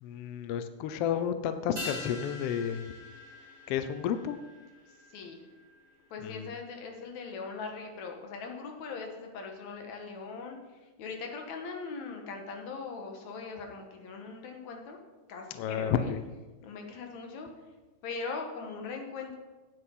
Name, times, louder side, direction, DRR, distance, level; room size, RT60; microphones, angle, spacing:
voice 1, 0.0-2.9 3.7-4.4 6.2-6.5 15.6-16.2, left 8 dB, 85° left, 10 dB, 1.3 m, -31 dB
sound 1, 1.8-6.5 6.7-6.8, left 2 dB, 35° right, 4.5 m, -44 dB
voice 2, 5.1-5.5 6.1-15.0 15.3-16.1 16.6-17.5 18.0-19.4, left 4 dB, 70° left, 3 dB, 2.6 m, -40 dB
9.4 x 8.7 x 5.3 m, 1.2 s
omnidirectional pair, 3.5 m